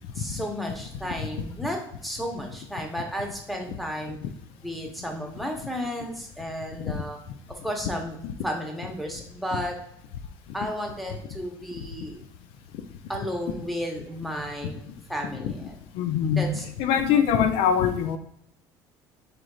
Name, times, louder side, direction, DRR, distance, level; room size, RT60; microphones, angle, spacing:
voice 1, 0.1-4.2 4.6-7.2 7.6-8.2 8.4-9.8 10.5-12.2 13.1-14.8 15.1-15.8 16.4-16.6, equal, ahead, 1 dB, 0.9 m, -33 dB
voice 2, 16.0-16.5 16.8-18.2, left 8 dB, 75° left, 8 dB, 0.4 m, -22 dB
5.1 x 3.1 x 2.4 m, 0.72 s
cardioid pair, 110°, 9 cm